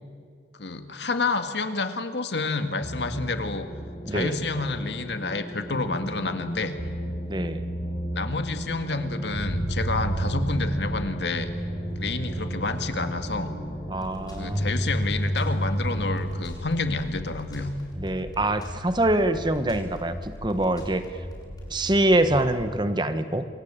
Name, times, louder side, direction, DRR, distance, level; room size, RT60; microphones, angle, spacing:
voice 1, 0.6-3.7 4.1-6.8 8.1-11.5 12.0-13.5 14.4-17.7, left 3 dB, 75° left, 8 dB, 1.9 m, -29 dB
sound 1, 2.8-16.4, right 1 dB, 40° left, 4.4 m, -31 dB
voice 2, 7.3-7.6 13.9-14.7 18.0-21.0 21.7-23.4, right 1 dB, 25° right, 10 dB, 1.2 m, -24 dB
sound 2, 14.0-22.6, left 1 dB, 20° left, 7.1 m, -39 dB
27.5 x 22.5 x 8.8 m, 2.1 s
head